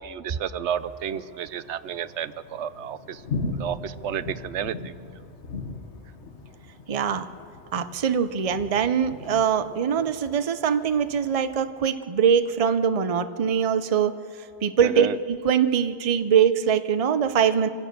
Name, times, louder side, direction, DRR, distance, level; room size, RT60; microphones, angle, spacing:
voice 1, 0.0-3.2 3.5-4.9 14.8-15.2, right 9 dB, 80° right, 15 dB, 0.9 m, -31 dB
Thunder, 0.8-11.7, left 3 dB, 85° left, 1.7 m, -39 dB
voice 2, 6.9-7.2 7.7-14.1 14.6-17.7, right 7 dB, 40° right, 11 dB, 0.7 m, -22 dB
25.5 x 16.5 x 6.7 m, 2.7 s
omnidirectional pair, 1.1 m